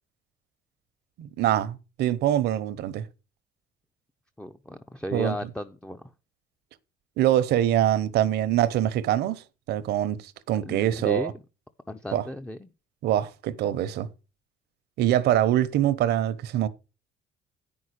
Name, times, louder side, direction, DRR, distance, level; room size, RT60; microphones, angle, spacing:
voice 1, 1.2-3.0 5.1-5.3 7.2-11.3 12.1-12.3 13.0-14.1 15.0-16.7, right 12 dB, 75° right, 0.9 m, -24 dB
voice 2, 4.4-6.1 10.7-11.3 11.9-12.7, left 1 dB, 5° left, 0.6 m, -35 dB
9.3 x 5.5 x 6.4 m
cardioid pair, 110°, 17 cm